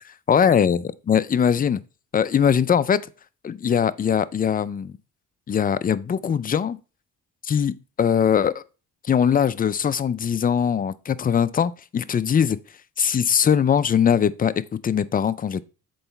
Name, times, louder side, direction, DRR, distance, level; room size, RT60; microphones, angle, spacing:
voice 1, 0.3-1.8 2.1-3.0 3.4-4.9 5.5-6.8 7.4-8.6 9.0-12.6 13.0-15.6, left 8 dB, 30° left, 0.5 m, -21 dB
7.8 x 4.0 x 4.5 m
cardioid pair, 90°, 30 cm